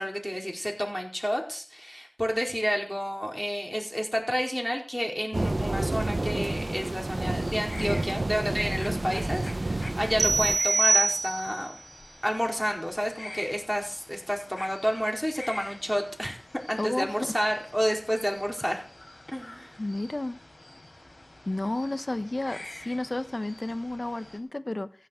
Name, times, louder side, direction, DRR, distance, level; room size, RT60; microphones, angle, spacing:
voice 1, 0.0-11.7 12.2-18.8 19.3-19.8, equal, 10° left, 1 dB, 4.6 m, -30 dB
sound 1, 5.3-10.6, right 2 dB, 40° right, 1.0 m, -30 dB
sound 2, 7.4-24.4, left 2 dB, 55° left, 4.9 m, -46 dB
sound 3, 10.2-11.7, right 3 dB, 85° right, 0.5 m, -24 dB
voice 2, 16.8-17.3 19.8-20.4 21.5-24.9, left 2 dB, 40° left, 12 dB, 1.1 m, -31 dB
15.0 x 7.8 x 7.6 m, 0.42 s
wide cardioid pair, 60°, 0 cm